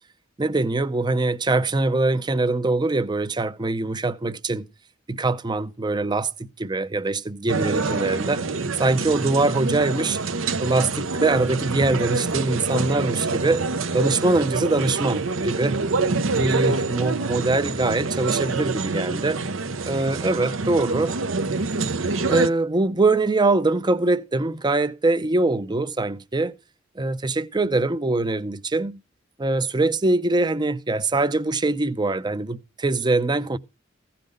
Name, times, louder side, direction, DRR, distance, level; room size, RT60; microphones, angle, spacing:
voice 1, 0.4-4.7 5.1-6.3 6.6-8.4 8.8-10.2 10.6-13.6 13.9-15.8 16.4-19.4 19.9-21.1 22.3-26.5 27.0-29.0 29.4-33.6, right 2 dB, 20° right, 0.6 m, -23 dB
sound 1, 7.5-22.5, right 3 dB, 80° right, 0.8 m, -26 dB
15.5 x 5.9 x 5.1 m
head